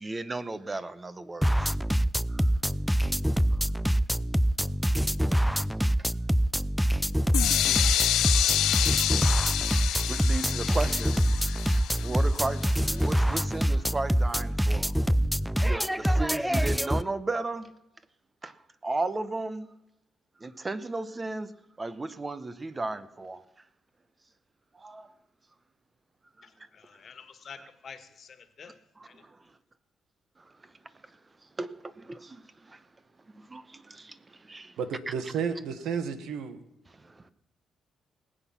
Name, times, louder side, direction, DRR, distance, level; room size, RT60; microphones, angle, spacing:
voice 1, 0.0-1.5 10.1-11.2 12.0-12.6 12.8-14.9 15.6-17.7 18.8-19.7 20.4-21.5 21.8-23.4 24.8-25.0 31.6-31.7 33.5-33.6 34.5-34.6 35.1-35.2, right 3 dB, 25° right, 14 dB, 0.9 m, -33 dB
sound 1, 1.4-17.0, equal, ahead, 0.4 m, -25 dB
sound 2, 7.3-13.2, left 13 dB, 80° left, 0.5 m, -28 dB
voice 2, 26.4-28.8 29.0-29.2, left 6 dB, 50° left, 10 dB, 1.7 m, -48 dB
voice 3, 34.8-36.6, right 6 dB, 80° right, 11 dB, 1.4 m, -32 dB
19.5 x 8.2 x 5.9 m, 0.88 s
cardioid pair, 90°, 0 cm